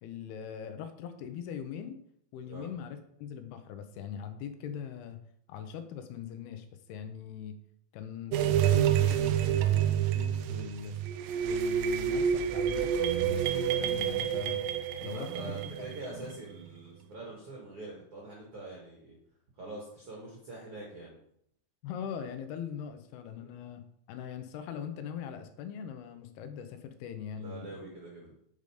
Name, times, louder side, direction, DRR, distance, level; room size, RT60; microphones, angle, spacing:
voice 1, 0.0-2.0 2.3-5.2 5.5-7.5 7.9-11.0 11.4-14.6 15.0-15.3 15.8-16.3 21.8-27.8, left 8 dB, 85° left, 9 dB, 2.7 m, -41 dB
sound 1, 8.3-16.4, right 9 dB, 80° right, 2.1 m, -28 dB
voice 2, 15.0-19.2 19.5-21.1 23.4-23.5 27.4-28.3, right 2 dB, 45° right, -4 dB, 2.1 m, -44 dB
8.1 x 5.3 x 4.9 m, 0.71 s
omnidirectional pair, 4.5 m